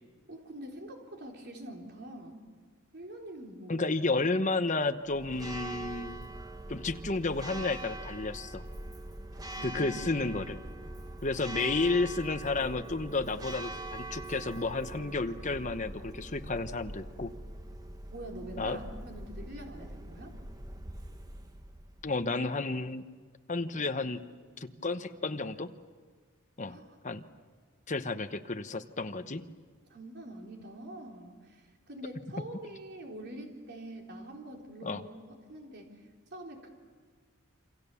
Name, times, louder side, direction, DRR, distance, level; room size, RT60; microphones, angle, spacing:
voice 1, 0.3-2.4 2.9-3.9 9.5-9.9 18.1-20.3 26.7-26.9 29.9-36.0 36.3-36.7, right 1 dB, 50° right, 1 dB, 4.1 m, -45 dB
voice 2, 3.7-6.2 6.7-8.6 9.6-10.6 11.2-17.3 18.6-18.8 22.0-23.0 23.5-24.2 24.6-25.7 26.6-26.8 27.0-27.2 27.9-29.4 34.8-35.0, left 3 dB, 35° left, 9 dB, 1.0 m, -32 dB
Church bell, 5.1-22.3, right 1 dB, 15° right, 1.1 m, -43 dB
28.0 x 26.5 x 7.1 m, 1.5 s
head